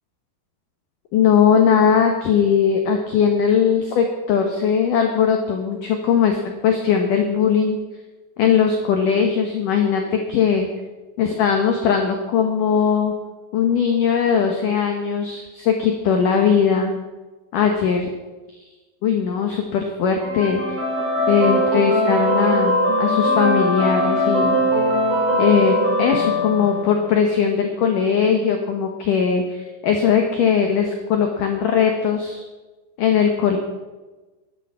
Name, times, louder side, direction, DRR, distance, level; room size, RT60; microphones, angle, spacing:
voice 1, 1.1-7.8 8.4-10.7 11.2-13.1 13.5-16.9 17.5-18.1 19.0-20.8 21.3-24.6 25.4-32.4 33.0-33.6, left 7 dB, 80° left, 3 dB, 1.8 m, -19 dB
sound 1, 20.2-27.2, equal, 40° right, 6.3 m, -20 dB
11.5 x 9.8 x 7.0 m, 1.2 s
omnidirectional pair, 5.4 m